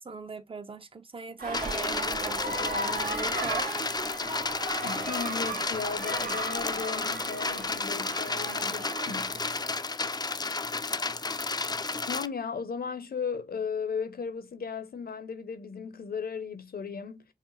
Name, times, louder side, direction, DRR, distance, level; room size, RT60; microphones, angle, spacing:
voice 1, 0.0-4.3 11.4-11.5, right 4 dB, 35° right, 0.7 m, -40 dB
sound 1, 1.4-9.7, right 2 dB, 65° right, 1.0 m, -36 dB
sound 2, 1.5-12.3, left 3 dB, 25° left, 0.4 m, -32 dB
voice 2, 4.8-9.4 12.0-17.2, left 6 dB, 70° left, 0.7 m, -36 dB
5.6 x 2.1 x 3.1 m
cardioid pair, 55°, 16 cm